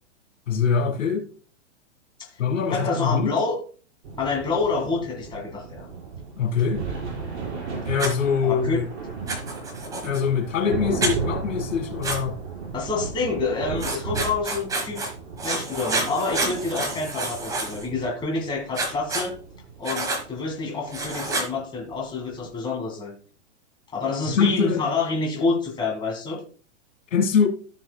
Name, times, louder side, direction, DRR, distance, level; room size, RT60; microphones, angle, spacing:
voice 1, 0.5-1.3 2.4-3.3 6.4-6.8 7.9-8.9 10.0-12.4 24.4-24.9 27.1-27.5, left 6 dB, 80° left, 2.0 m, -23 dB
voice 2, 2.7-3.6 4.2-5.9 8.4-8.8 9.2-9.3 12.7-15.0 15.4-19.4 19.8-23.1 23.9-26.4, left 3 dB, 10° left, 1.9 m, -27 dB
sound 1, 4.0-22.5, right 5 dB, 60° right, 4.8 m, -35 dB
Writing, 8.0-8.1 9.3-10.2 11.0-11.1 12.0-12.2 13.8-15.1 15.4-17.9 18.7-19.3 19.8-20.2 20.9-21.5, right 2 dB, 10° right, 1.2 m, -28 dB
14.5 x 6.2 x 2.2 m
hypercardioid pair, 155°, 38 cm